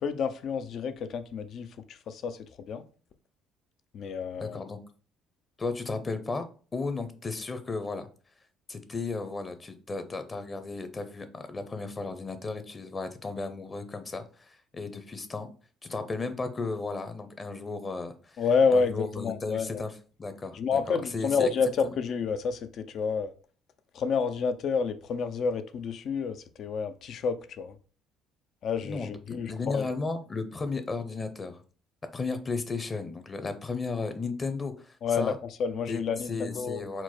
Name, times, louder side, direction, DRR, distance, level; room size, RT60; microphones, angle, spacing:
voice 1, 0.0-2.8 3.9-4.6 18.4-19.8 20.5-23.3 23.9-27.8 28.6-29.8 35.0-35.3 35.6-36.8, left 5 dB, 60° left, 0.4 m, -29 dB
voice 2, 4.4-4.8 5.6-6.5 6.7-8.1 8.7-15.5 15.8-18.4 18.7-19.9 20.2-20.6 20.9-21.5 21.8-21.9 28.8-31.6 32.1-35.4 35.9-36.0 36.3-37.0, left 3 dB, 30° left, 0.8 m, -34 dB
4.4 x 2.1 x 4.2 m
hypercardioid pair, 55°, 0 cm